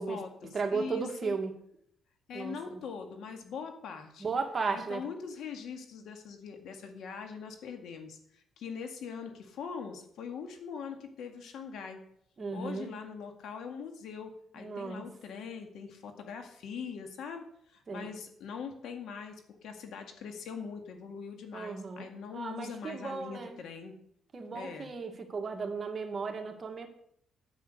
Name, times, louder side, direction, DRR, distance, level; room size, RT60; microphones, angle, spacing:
voice 1, 0.0-1.3 2.3-4.2 4.7-12.0 12.5-19.4 19.6-24.0 24.5-24.9, left 6 dB, 75° left, 5 dB, 2.0 m, -42 dB
voice 2, 0.5-1.6 2.3-2.8 4.2-5.1 12.4-12.9 14.6-15.1 17.9-18.1 21.5-23.6 24.3-26.9, right 4 dB, 40° right, 4 dB, 1.9 m, -35 dB
9.9 x 8.3 x 6.7 m, 0.69 s
cardioid pair, 90°, 0 cm